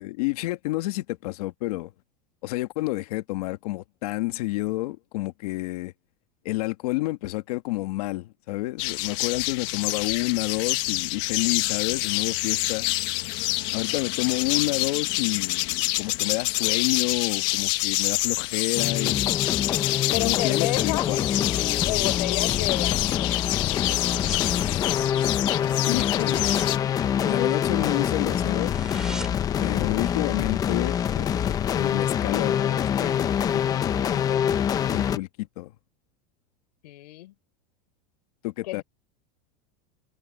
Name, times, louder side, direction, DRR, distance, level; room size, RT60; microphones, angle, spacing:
voice 1, 0.0-1.9 2.4-5.9 6.4-12.9 13.7-19.3 20.2-21.3 24.6-25.0 25.8-26.5 27.3-28.7 29.6-34.6 34.9-35.7 38.4-38.8, left 19 dB, 65° left, 1.6 m, -30 dB
sound 1, 8.8-26.8, left 20 dB, 50° left, 1.5 m, -27 dB
sound 2, 18.7-35.2, left 9 dB, 15° left, 0.7 m, -25 dB
voice 2, 20.1-21.1 21.9-23.3 36.8-37.3 38.6-38.8, left 17 dB, 80° left, 6.4 m, -31 dB
sound 3, 23.8-24.6 24.8-25.1 25.4-25.5 25.9-27.8 28.1-28.2 28.5-29.6 29.9-30.0, right 1 dB, 5° right, 4.1 m, -41 dB
supercardioid pair, 170°, 21 cm